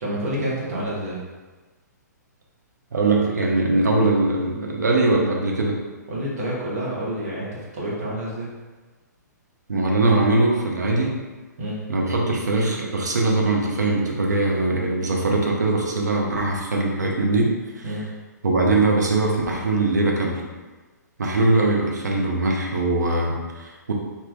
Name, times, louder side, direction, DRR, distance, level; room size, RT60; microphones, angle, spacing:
voice 1, 0.0-1.2 6.1-8.5 11.6-11.8 17.8-18.0, right 1 dB, 55° right, -5 dB, 1.1 m, -28 dB
voice 2, 2.9-5.8 9.7-11.2 11.9-17.8 18.4-20.4 21.2-23.9, right 2 dB, 70° right, -1 dB, 0.7 m, -21 dB
3.5 x 2.8 x 2.3 m, 1.3 s
figure-of-eight pair, 120°, 10 cm